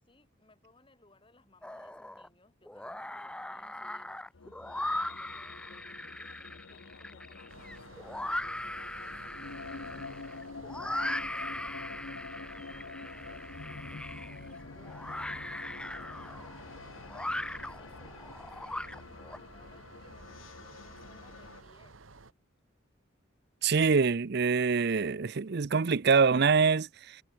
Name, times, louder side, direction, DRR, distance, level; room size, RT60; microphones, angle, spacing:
voice 1, 0.0-11.6 12.3-13.5 14.2-18.4 18.7-22.0, left 2 dB, 25° left, 7.1 m, -64 dB
sound 1, 1.6-2.3 2.7-19.4, left 1 dB, 5° left, 0.5 m, -39 dB
sound 2, 4.3-21.6, left 4 dB, 90° left, 1.0 m, -47 dB
sound 3, 7.5-22.3, right 3 dB, 85° right, 1.3 m, -54 dB
voice 2, 23.6-27.2, right 5 dB, 55° right, 0.6 m, -25 dB
head